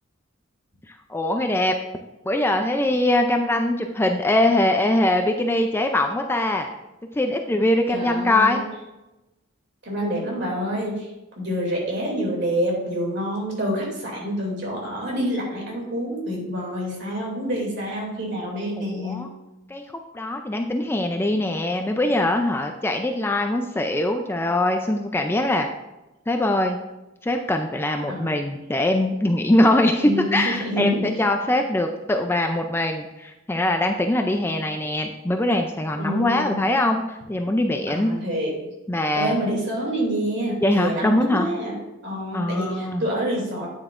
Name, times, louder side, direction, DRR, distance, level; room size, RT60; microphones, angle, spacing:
voice 1, 0.9-1.7 2.2-6.7 7.1-8.6 18.8-19.3 19.7-19.8 20.1-25.7 26.3-26.8 27.2-38.1 38.9-39.4 40.6-41.5 42.3-43.0, left 1 dB, 10° left, 4 dB, 0.4 m, -22 dB
voice 2, 7.9-8.7 9.8-19.3 28.1-28.3 30.0-31.1 36.0-36.6 37.9-38.5 39.1-41.8 42.0-43.7, equal, 55° right, -2 dB, 2.6 m, -27 dB
8.9 x 7.8 x 2.5 m, 0.99 s
head